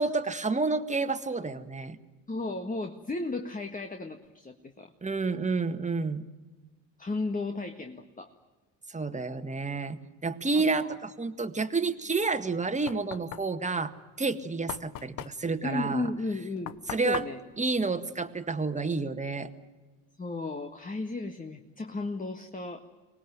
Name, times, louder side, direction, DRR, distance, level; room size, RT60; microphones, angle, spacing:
voice 1, 0.0-2.0 5.0-6.2 8.9-16.1 16.9-17.3 17.6-19.5, right 3 dB, 20° right, 9 dB, 1.8 m, -30 dB
voice 2, 2.3-4.9 7.0-8.3 10.5-10.9 15.6-16.8 17.0-17.4 20.2-22.8, left 3 dB, 20° left, 6 dB, 1.8 m, -34 dB
Knock, 12.3-18.8, left 12 dB, 60° left, 1.0 m, -43 dB
25.0 x 19.5 x 9.3 m, 1.3 s
hypercardioid pair, 60°, 39 cm